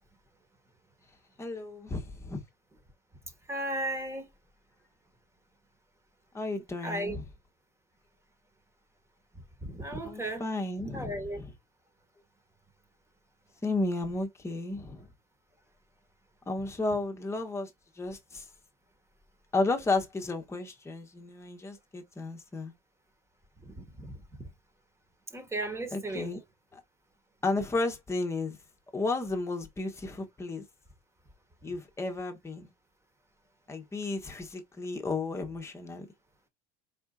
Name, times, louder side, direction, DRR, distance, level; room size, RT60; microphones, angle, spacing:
voice 1, 1.4-2.4 6.3-7.2 10.0-11.5 13.6-15.1 16.5-17.7 18.0-18.4 19.5-22.7 25.9-26.4 26.7-26.8 27.4-28.6 28.9-30.6 31.6-32.7 33.7-36.1, left 3 dB, 15° left, 1.3 m, -33 dB
voice 2, 3.5-4.3 6.8-7.2 9.6-10.4 10.9-11.4 23.6-24.2 25.3-26.3, right 1 dB, 15° right, 1.7 m, -35 dB
4.4 x 4.3 x 2.4 m
supercardioid pair, 110°, 18 cm